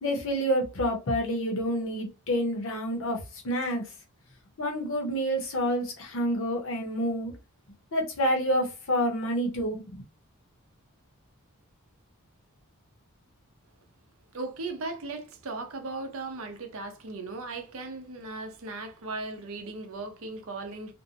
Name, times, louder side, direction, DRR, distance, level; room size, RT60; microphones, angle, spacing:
voice 1, 0.0-3.8 4.6-7.3 7.9-10.0, equal, 60° left, 0.8 m, -28 dB
voice 2, 14.3-20.9, right 3 dB, 65° right, 0.6 m, -37 dB
2.6 x 2.1 x 2.8 m
head